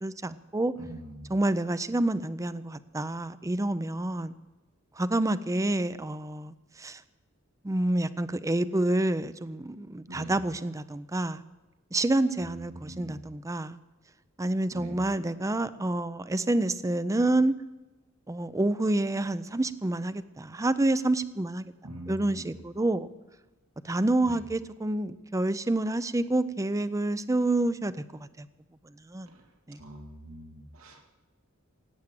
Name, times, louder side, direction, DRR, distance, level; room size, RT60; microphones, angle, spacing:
voice 1, 0.0-0.7 1.3-4.3 5.0-7.0 7.6-11.4 11.9-13.8 14.4-17.6 18.3-21.7 22.1-23.1 23.8-28.5 29.1-29.3 29.7-29.8, right 2 dB, 15° right, 14 dB, 0.5 m, -28 dB
voice 2, 0.8-1.2 10.1-10.3 12.4-13.2 14.7-15.0 21.8-22.5 24.2-24.4 29.3-29.4 29.8-31.1, right 1 dB, 85° right, 2 dB, 2.3 m, -43 dB
17.5 x 9.0 x 7.5 m, 1.1 s
head